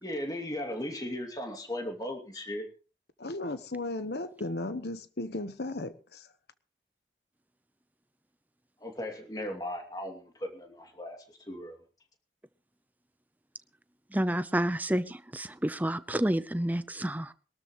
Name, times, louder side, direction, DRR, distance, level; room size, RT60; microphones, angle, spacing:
voice 1, 0.0-2.7 8.8-11.8, left 1 dB, 20° left, 2.5 m, -37 dB
voice 2, 3.2-6.3, left 2 dB, 70° left, 1.1 m, -35 dB
voice 3, 14.1-17.3, right 1 dB, 10° right, 0.6 m, -29 dB
22.5 x 13.0 x 3.1 m
head